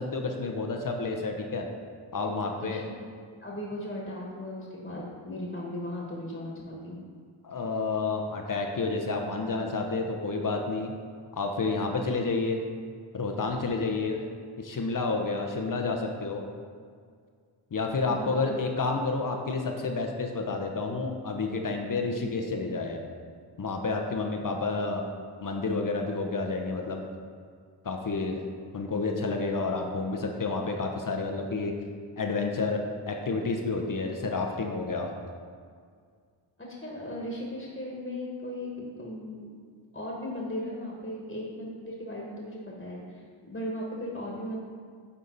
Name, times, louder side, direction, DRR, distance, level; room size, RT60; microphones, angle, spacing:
voice 1, 0.0-1.7 2.1-2.8 7.4-10.9 11.3-12.6 13.1-14.2 14.6-16.5 17.7-23.1 23.6-25.0 25.4-27.0 27.8-28.4 28.7-31.7 32.2-35.1, left 3 dB, 40° left, 2 dB, 0.9 m, -30 dB
voice 2, 2.2-3.1 3.4-7.0 18.1-18.6 36.7-39.5 39.9-44.6, left 1 dB, 20° left, -3 dB, 1.6 m, -37 dB
9.7 x 3.7 x 4.0 m, 2.1 s
cardioid pair, 60°, 49 cm